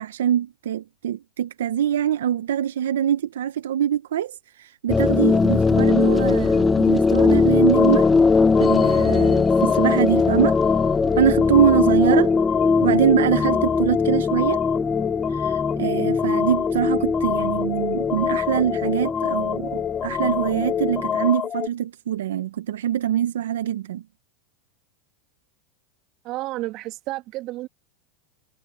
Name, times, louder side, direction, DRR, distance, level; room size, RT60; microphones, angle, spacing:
voice 1, 0.0-8.1 8.6-10.6 11.2-12.3 12.8-14.6 15.3-24.0, right 10 dB, 85° right, 1.0 m, -23 dB
sound 1, 4.9-21.3, left 4 dB, 15° left, 0.5 m, -21 dB
sound 2, 7.7-21.7, left 9 dB, 30° left, 4.6 m, -27 dB
voice 2, 12.0-12.3 26.2-27.7, right 18 dB, 50° right, 2.5 m, -31 dB
hypercardioid pair, 110°, 0 cm